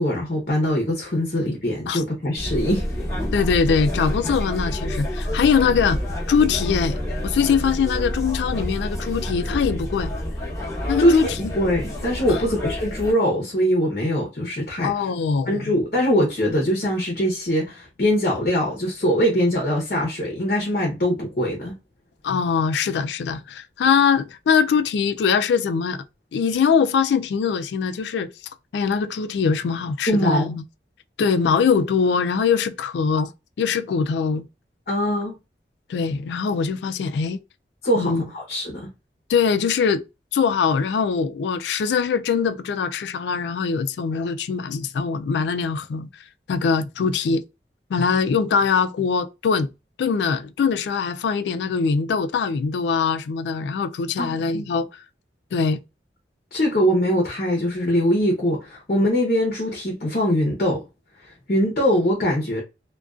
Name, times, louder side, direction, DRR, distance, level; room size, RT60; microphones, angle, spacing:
voice 1, 0.0-2.8 11.0-15.1 15.5-21.8 30.1-30.5 34.9-35.4 37.8-38.9 54.2-54.6 56.5-60.8 61.2-62.6, equal, 50° left, 0.7 m, -22 dB
sound 1, 2.4-13.1, equal, 15° left, 0.9 m, -28 dB
voice 2, 3.3-6.0 6.3-10.1 10.9-11.5 12.3-12.4 14.8-15.7 22.2-26.0 26.3-28.3 28.7-30.6 31.2-33.3 33.6-34.5 35.9-37.4 38.0-38.2 39.3-40.0 40.3-46.1 46.5-47.4 47.9-49.7 50.0-55.0 55.5-55.8, left 6 dB, 75° left, 0.3 m, -22 dB
2.5 x 2.2 x 2.3 m
head